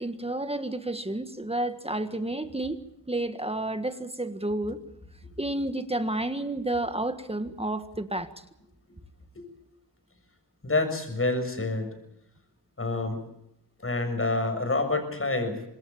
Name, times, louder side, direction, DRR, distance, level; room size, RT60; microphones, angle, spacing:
voice 1, 0.0-2.8 3.1-4.8 5.4-8.3, right 1 dB, 15° right, 9 dB, 1.6 m, -30 dB
voice 2, 10.6-11.9 12.8-13.2 13.8-15.6, left 2 dB, 30° left, 6 dB, 7.0 m, -27 dB
25.5 x 20.5 x 7.2 m, 0.80 s
cardioid pair, 70°, 42 cm